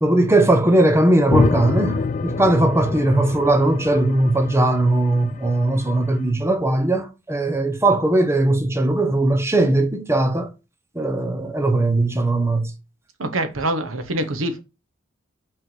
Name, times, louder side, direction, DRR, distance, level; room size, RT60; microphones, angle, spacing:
voice 1, 0.0-10.5 10.9-12.7, right 1 dB, 15° right, 0.8 m, -19 dB
sound 1, 1.3-6.0, left 4 dB, 40° left, 0.4 m, -26 dB
voice 2, 13.2-14.6, right 1 dB, 80° right, 1.1 m, -25 dB
5.7 x 3.5 x 5.4 m
head